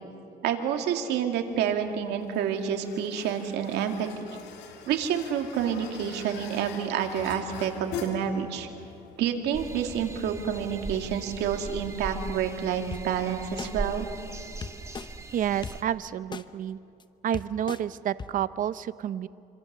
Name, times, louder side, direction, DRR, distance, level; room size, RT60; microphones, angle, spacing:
voice 1, 0.4-4.3 4.9-8.7 9.2-14.1, right 8 dB, 80° right, 4 dB, 2.3 m, -28 dB
sound 1, 1.3-14.7, left 7 dB, 90° left, 2.4 m, -45 dB
sound 2, 9.5-15.8, right 2 dB, 15° right, 1.6 m, -39 dB
sound 3, 12.9-13.0 13.6-13.7 14.6-15.1 15.6-15.7 16.3-16.4 17.0-17.1 17.3-17.8 18.2-18.3, left 5 dB, 25° left, 0.9 m, -36 dB
voice 2, 15.3-16.8 17.2-19.3, right 10 dB, 55° right, 15 dB, 0.7 m, -29 dB
26.5 x 26.0 x 6.8 m, 2.6 s
cardioid pair, 110°, 17 cm